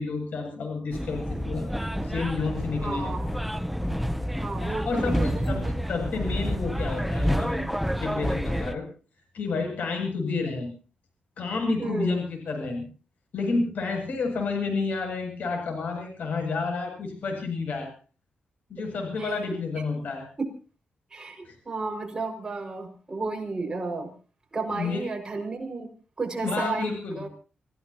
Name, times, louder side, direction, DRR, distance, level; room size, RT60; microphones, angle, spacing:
voice 1, 0.0-3.1 4.8-5.6 5.9-8.9 9.3-10.7 11.4-12.8 13.3-17.9 18.7-20.3 21.4-21.5 24.7-25.0 26.4-27.3, left 4 dB, 70° left, 3 dB, 7.8 m, -30 dB
sound 1, 0.9-8.7, equal, ahead, 0.8 m, -29 dB
voice 2, 2.8-3.3 4.3-5.7 11.8-12.2 19.2-19.4 21.1-24.1 24.5-25.9 26.2-27.3, right 3 dB, 25° right, 3 dB, 6.0 m, -32 dB
28.5 x 16.5 x 3.0 m, 0.38 s
cardioid pair, 105°, 3 cm